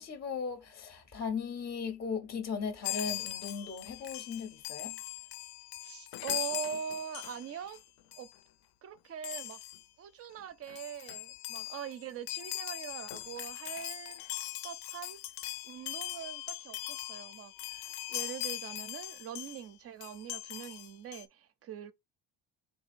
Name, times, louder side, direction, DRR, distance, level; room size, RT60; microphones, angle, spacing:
voice 1, 0.0-5.0, left 5 dB, 25° left, 0.6 m, -37 dB
Chime, 2.8-7.8 8.1-8.3 9.2-9.8 10.4-10.5 10.7-19.7 20.0-21.3, left 16 dB, 70° left, 0.5 m, -40 dB
voice 2, 5.8-7.8 8.2-8.3 8.8-9.6 10.0-14.2 14.6-15.2 15.6-21.9, right 9 dB, 35° right, 0.4 m, -42 dB
3.7 x 3.5 x 2.5 m
cardioid pair, 150°, 41 cm